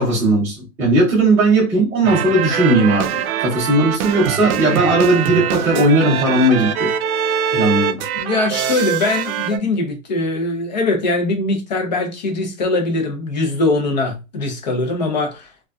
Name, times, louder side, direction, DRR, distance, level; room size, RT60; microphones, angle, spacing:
voice 1, 0.0-6.9 7.5-8.0, right 2 dB, 5° right, 0.7 m, -17 dB
sound 1, 2.0-9.6, right 9 dB, 90° right, 0.5 m, -23 dB
voice 2, 8.1-15.5, left 2 dB, 35° left, 0.4 m, -21 dB
2.4 x 2.3 x 2.2 m
supercardioid pair, 170°, 42 cm